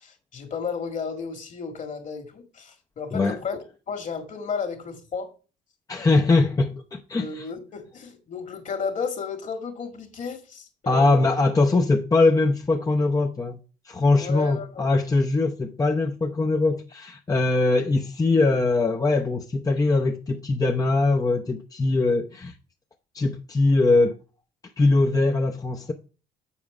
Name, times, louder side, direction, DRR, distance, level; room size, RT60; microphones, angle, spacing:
voice 1, 0.0-3.6 3.9-5.3 6.1-6.2 7.2-11.3 14.2-14.9, left 5 dB, 50° left, 1.9 m, -33 dB
voice 2, 5.9-7.5 10.9-13.6 13.8-22.5 23.1-24.2 24.8-25.9, left 3 dB, 20° left, 0.8 m, -22 dB
7.2 x 4.7 x 4.9 m
supercardioid pair, 80°, 17 cm